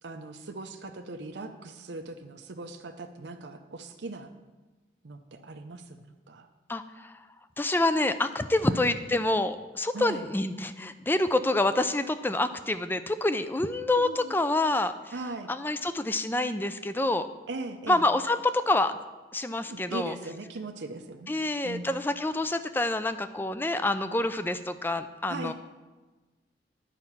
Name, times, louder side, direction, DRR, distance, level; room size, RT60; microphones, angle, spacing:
voice 1, 0.0-4.3 5.0-6.5 8.7-8.8 9.9-10.2 13.9-14.3 15.1-15.5 17.5-18.0 19.6-21.9 25.3-25.5, right 3 dB, 80° right, 5 dB, 0.6 m, -39 dB
voice 2, 6.7-7.2 7.6-14.9 15.5-17.3 17.9-19.0 19.3-20.1 21.3-25.5, left 2 dB, 10° left, 11 dB, 0.4 m, -27 dB
9.9 x 5.7 x 7.2 m, 1.2 s
head